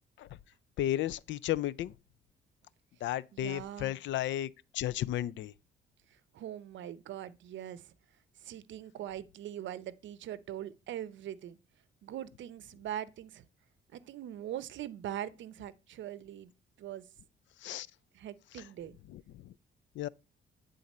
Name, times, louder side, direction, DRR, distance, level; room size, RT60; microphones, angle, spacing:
voice 1, 0.8-1.9 3.0-5.5 17.6-17.9 19.1-19.5 20.0-20.1, left 13 dB, 70° left, 0.4 m, -34 dB
voice 2, 3.3-4.0 6.1-7.9 8.4-11.6 12.0-13.4 13.9-16.5 16.8-17.0 18.1-19.0, right 11 dB, 70° right, 0.6 m, -42 dB
9.4 x 3.9 x 4.2 m
cardioid pair, 90°, 20 cm